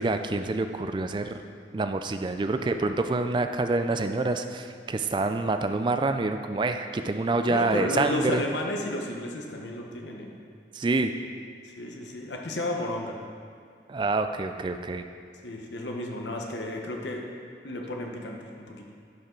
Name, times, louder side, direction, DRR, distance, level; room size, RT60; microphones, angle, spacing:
voice 1, 0.0-1.3 1.7-8.4 10.7-11.1 13.9-15.0, right 3 dB, 25° right, 7 dB, 0.3 m, -27 dB
voice 2, 2.5-2.8 7.5-10.3 11.6-13.2 15.4-17.3 17.6-18.9, left 1 dB, 90° left, 1 dB, 1.0 m, -33 dB
11.0 x 5.5 x 3.8 m, 2.3 s
head